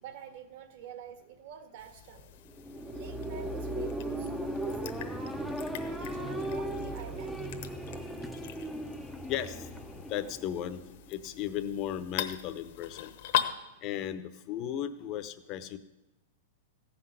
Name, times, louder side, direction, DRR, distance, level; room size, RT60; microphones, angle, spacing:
voice 1, 0.0-2.4 2.9-4.3 4.6-5.2 5.8-7.4, right 8 dB, 50° right, 8 dB, 1.6 m, -47 dB
sound 1, 1.8-13.5, left 11 dB, 55° left, 1.0 m, -40 dB
sound 2, 2.4-11.1, right 1 dB, ahead, 0.6 m, -37 dB
voice 2, 9.3-9.7 10.1-10.8 11.1-13.1 13.8-15.8, left 10 dB, 30° left, 12 dB, 0.8 m, -35 dB
14.5 x 6.0 x 9.6 m, 0.97 s
supercardioid pair, 165°, 0 cm